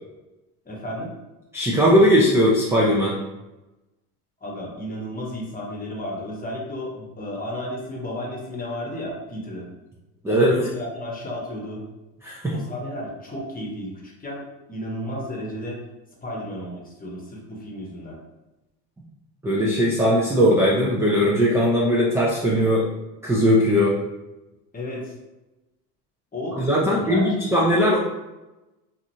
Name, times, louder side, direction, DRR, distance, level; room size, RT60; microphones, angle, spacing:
voice 1, 0.6-1.1 4.4-9.7 10.3-11.8 12.5-14.4 14.7-15.8 16.2-18.2 24.7-25.1 26.3-27.5, left 1 dB, 20° left, -2 dB, 0.9 m, -33 dB
voice 2, 1.5-3.2 10.2-10.5 12.2-12.5 19.4-22.9 23.2-24.0 26.5-28.0, equal, 5° right, -5 dB, 0.3 m, -19 dB
2.9 x 2.5 x 2.6 m, 1.0 s
supercardioid pair, 85°, 45 cm